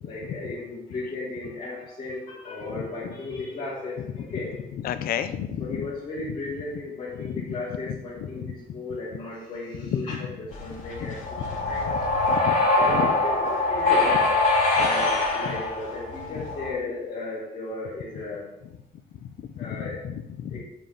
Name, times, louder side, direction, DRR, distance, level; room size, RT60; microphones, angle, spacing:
voice 1, 0.0-4.7 5.6-11.9 12.8-14.2 14.8-18.5 19.6-20.0 20.5-20.6, left 3 dB, 35° left, -10 dB, 3.7 m, -35 dB
voice 2, 4.8-5.9 7.2-7.3 8.3-8.5 9.9-10.2 11.0-11.1 12.3-12.5 12.9-13.1 14.8-14.9 19.4-20.6, left 9 dB, 70° left, 12 dB, 0.8 m, -31 dB
sound 1, 10.5-16.7, left 2 dB, 55° left, 3.8 m, -23 dB
7.6 x 6.7 x 7.6 m, 0.87 s
cardioid pair, 130°, 16 cm